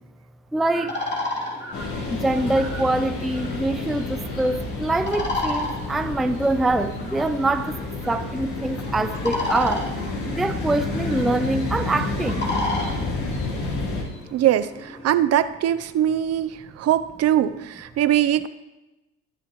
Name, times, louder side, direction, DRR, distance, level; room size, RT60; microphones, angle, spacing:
voice 1, 0.5-0.9 2.1-7.7 8.1-9.8 10.3-12.4, right 2 dB, ahead, 10 dB, 0.4 m, -24 dB
sound 1, 0.7-15.2, left 2 dB, 30° left, 3.0 m, -33 dB
sound 2, 1.7-14.0, left 2 dB, 55° left, 3.9 m, -30 dB
voice 2, 14.3-18.5, right 11 dB, 45° right, 13 dB, 0.6 m, -22 dB
21.0 x 9.9 x 3.0 m, 1.0 s
supercardioid pair, 105°, 34 cm